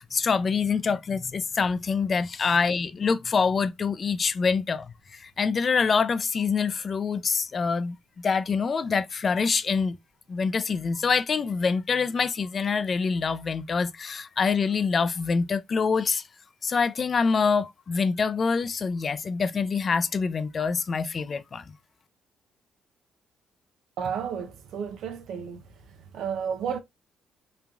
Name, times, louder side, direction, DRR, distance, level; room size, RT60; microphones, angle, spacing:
voice 1, 0.1-4.9 5.2-7.9 8.2-10.0 10.3-16.2 16.6-21.6, left 5 dB, 40° left, 0.3 m, -25 dB
voice 2, 24.0-25.6 26.1-26.8, right 7 dB, 80° right, 0.5 m, -32 dB
3.0 x 2.5 x 2.2 m
cardioid pair, 90°, 0 cm